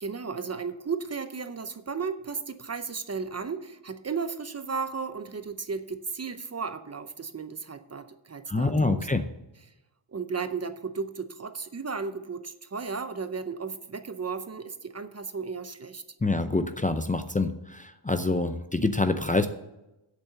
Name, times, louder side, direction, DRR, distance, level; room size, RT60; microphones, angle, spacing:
voice 1, 0.0-9.1 10.1-16.0, right 5 dB, 30° right, 10 dB, 0.6 m, -34 dB
voice 2, 8.5-9.2 16.2-19.5, left 2 dB, 15° left, 8 dB, 0.5 m, -26 dB
8.2 x 7.2 x 6.9 m, 0.94 s
wide cardioid pair, 125°, 48 cm